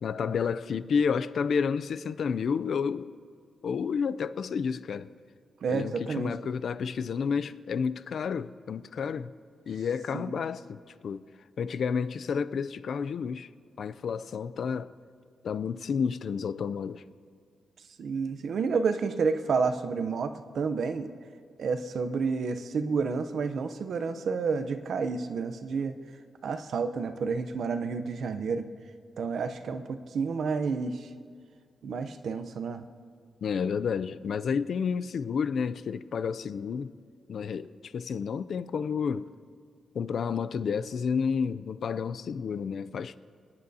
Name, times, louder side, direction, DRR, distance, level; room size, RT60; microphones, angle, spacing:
voice 1, 0.0-3.1 3.6-5.1 5.7-9.3 9.7-11.2 11.6-13.5 13.8-14.9 15.4-17.0 33.4-36.9 37.3-39.3 39.9-43.2, left 6 dB, 55° left, 0.4 m, -30 dB
voice 2, 5.6-6.3 10.1-10.3 18.0-21.1 21.6-25.9 26.4-28.7 29.2-31.1 31.8-32.8, right 5 dB, 60° right, 0.7 m, -30 dB
28.5 x 10.5 x 2.8 m
wide cardioid pair, 170°, 0 cm